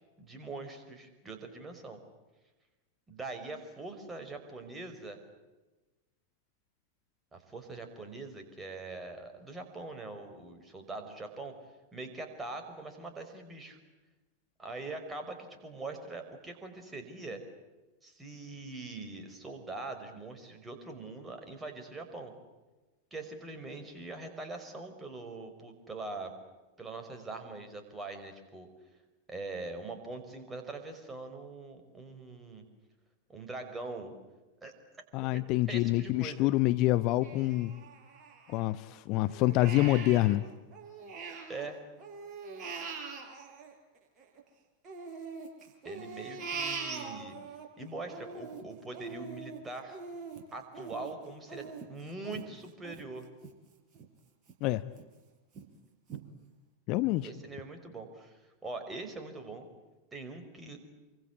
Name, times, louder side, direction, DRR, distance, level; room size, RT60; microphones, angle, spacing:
voice 1, 0.2-2.0 3.1-5.2 7.3-11.5 11.9-13.8 14.6-17.4 18.0-22.3 23.1-26.3 26.8-28.7 29.3-32.6 33.3-34.1 34.6-35.0 35.3-35.4 35.7-36.5 41.5-41.8 45.8-47.4 47.8-50.0 50.5-53.3 57.2-59.7 60.1-60.8, right 3 dB, 15° right, 6 dB, 5.6 m, -42 dB
voice 2, 35.1-37.7 38.5-40.4 54.6-54.8 56.9-57.3, left 17 dB, 40° left, 13 dB, 1.0 m, -27 dB
Crying sobbing, 37.2-38.9 39.3-41.7 42.0-44.4 44.8-47.7 48.0-53.5 53.9-54.1 54.5-55.0 55.5-55.6 56.1-56.2, right 5 dB, 30° right, 5.6 m, -42 dB
28.0 x 25.0 x 8.4 m, 1.2 s
figure-of-eight pair, 90°, 0 cm